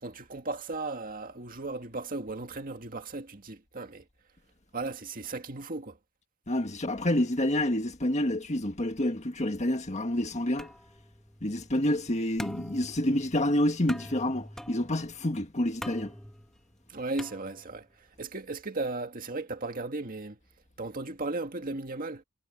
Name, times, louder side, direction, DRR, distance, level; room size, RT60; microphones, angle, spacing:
voice 1, 0.0-4.1 4.7-6.0 16.9-20.4 20.8-22.2, right 3 dB, 45° right, 1.9 m, -36 dB
voice 2, 6.5-10.7 11.4-16.1, left 1 dB, 35° left, 1.8 m, -28 dB
sound 1, 10.6-18.0, equal, 5° left, 1.8 m, -45 dB
head